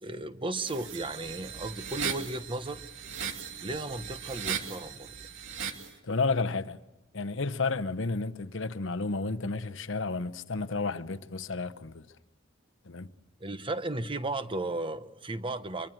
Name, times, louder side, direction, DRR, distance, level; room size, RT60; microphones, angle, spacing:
voice 1, 0.0-2.8 3.6-5.1 13.4-15.9, right 2 dB, 25° right, 1.1 m, -35 dB
sound 1, 0.6-5.9, right 7 dB, 75° right, 2.4 m, -38 dB
voice 2, 6.0-6.8 7.1-12.1 12.8-13.1, left 3 dB, 70° left, 0.9 m, -31 dB
25.0 x 24.0 x 7.7 m
head